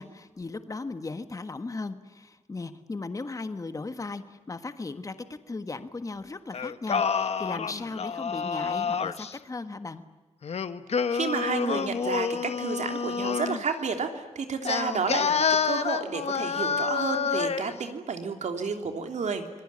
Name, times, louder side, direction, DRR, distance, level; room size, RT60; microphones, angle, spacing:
voice 1, 0.0-5.1 5.5-10.0, left 3 dB, 30° left, 10 dB, 1.4 m, -37 dB
Singing, 6.5-9.3 10.4-13.6 14.6-17.7, left 6 dB, 65° left, 1.2 m, -28 dB
voice 2, 11.1-19.4, right 5 dB, 90° right, 6 dB, 3.2 m, -31 dB
26.0 x 22.0 x 9.8 m, 1.2 s
wide cardioid pair, 170°, 12 cm